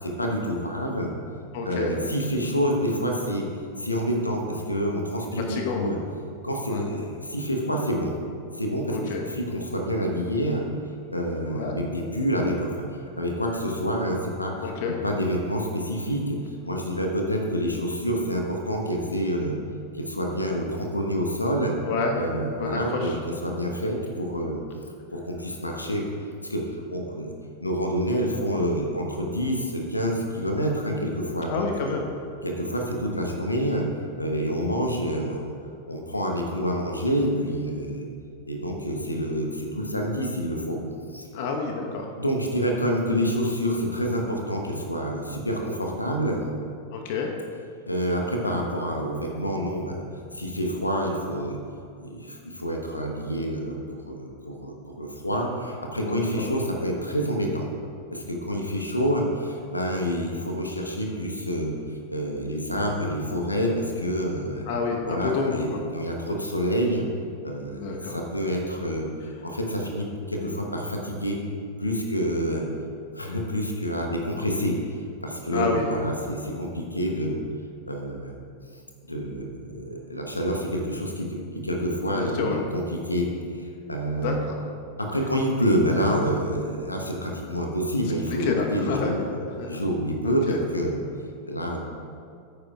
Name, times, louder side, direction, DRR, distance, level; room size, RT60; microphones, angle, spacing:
voice 1, 0.0-1.1 1.6-3.5 3.8-6.0 6.4-8.2 8.5-10.7 11.1-12.8 13.2-16.4 16.6-19.6 19.9-21.8 22.1-24.6 25.1-26.0 26.4-26.6 26.9-27.3 27.6-32.0 32.4-33.9 34.2-35.5 35.9-38.0 38.5-40.8 41.1-41.3 42.2-46.4 47.9-50.0 50.3-51.6 52.0-57.7 58.1-64.7 65.0-67.1 67.4-69.1 69.4-71.4 71.8-72.7 73.1-77.4 77.9-78.4 79.0-84.4 85.0-91.0 91.4-91.8, equal, 85° left, 1 dB, 1.1 m, -27 dB
voice 2, 1.5-1.9 5.5-5.9 6.7-6.8 8.9-9.2 11.4-11.8 14.6-14.9 21.8-22.1 22.5-23.2 31.5-32.0 41.3-42.1 46.9-47.3 56.0-56.5 64.7-65.6 67.7-68.2 75.5-75.8 82.1-82.6 84.2-84.6 88.4-89.1 89.6-89.7 90.2-90.6, left 5 dB, 50° left, 2 dB, 1.1 m, -29 dB
15.0 x 9.0 x 2.4 m, 2.4 s
figure-of-eight pair, 90°, 0 cm